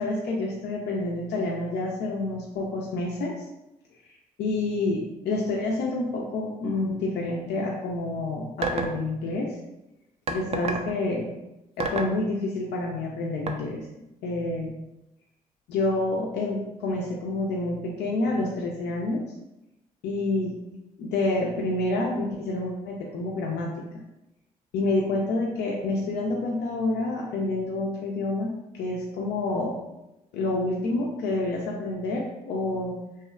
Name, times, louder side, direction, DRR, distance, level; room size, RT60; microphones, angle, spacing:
voice 1, 0.0-3.5 4.4-9.6 10.3-11.3 11.8-13.9 14.2-14.7 15.7-19.2 20.0-20.5 21.0-23.7 24.7-29.8 30.3-32.9, left 2 dB, 60° left, -2 dB, 0.4 m, -28 dB
sound 1, 8.6-9.0 10.3-10.9 11.8-12.2 13.5-13.6, right 4 dB, 35° right, 0.3 m, -28 dB
2.6 x 2.1 x 2.4 m, 0.93 s
hypercardioid pair, 45°, 19 cm